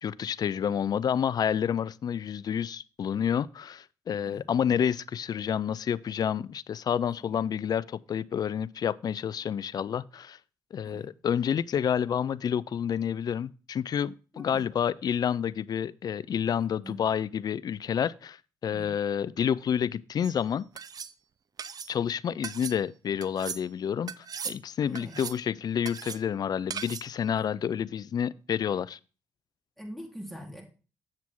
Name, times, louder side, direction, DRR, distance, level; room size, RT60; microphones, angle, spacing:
voice 1, 0.0-10.4 10.7-18.4 18.6-20.7 21.9-24.1 24.4-29.0, left 8 dB, 50° left, 0.4 m, -29 dB
voice 2, 14.3-14.7 16.8-17.0 18.7-18.9 24.8-25.2 27.5-27.8 29.8-30.6, equal, ahead, 3.5 m, -44 dB
sound 1, 20.2-20.4 20.8-21.1 21.6-21.9 22.4-22.8 23.2-23.6 24.1-24.6 25.0-25.4 25.9-26.2 26.7-27.1, right 7 dB, 50° right, 0.6 m, -38 dB
7.6 x 7.3 x 3.6 m
supercardioid pair, 55°, 8 cm